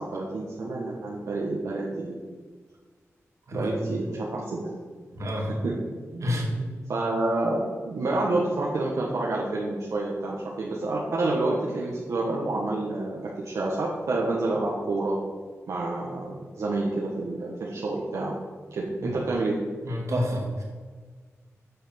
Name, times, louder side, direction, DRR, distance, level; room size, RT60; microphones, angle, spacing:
voice 1, 0.0-2.1 3.5-4.7 5.6-5.7 6.1-15.2 15.7-18.3 18.7-19.6, right 2 dB, 85° right, -4 dB, 1.5 m, -28 dB
voice 2, 19.8-20.6, equal, 70° right, -1 dB, 2.5 m, -28 dB
8.7 x 6.0 x 6.9 m, 1.5 s
wide cardioid pair, 100°, 5 cm